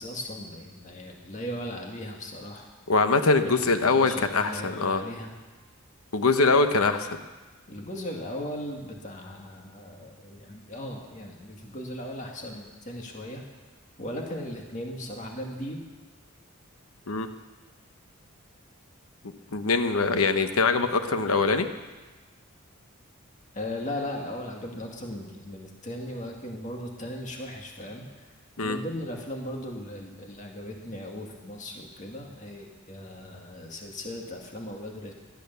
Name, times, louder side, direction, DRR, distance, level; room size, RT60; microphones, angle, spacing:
voice 1, 0.0-2.7 3.4-5.3 7.7-13.4 14.0-15.8 23.5-28.3 28.6-35.1, left 1 dB, 35° left, 1 dB, 2.0 m, -37 dB
voice 2, 2.9-5.0 6.1-7.2 17.1-17.3 19.5-21.7 28.6-28.8, left 3 dB, 90° left, 8 dB, 1.0 m, -23 dB
17.0 x 11.5 x 6.9 m, 1.2 s
head